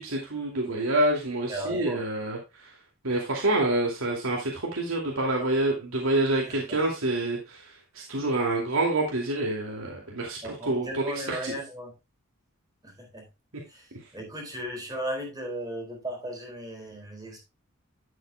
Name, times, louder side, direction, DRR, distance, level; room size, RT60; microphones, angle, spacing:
voice 1, 0.0-2.7 3.0-11.5, right 2 dB, 70° right, 2.5 m, -27 dB
voice 2, 1.5-2.0 6.5-6.6 10.4-11.9 12.8-13.2 13.7-13.9 14.1-17.4, right 1 dB, 15° right, 3.9 m, -36 dB
12.0 x 8.1 x 2.3 m
head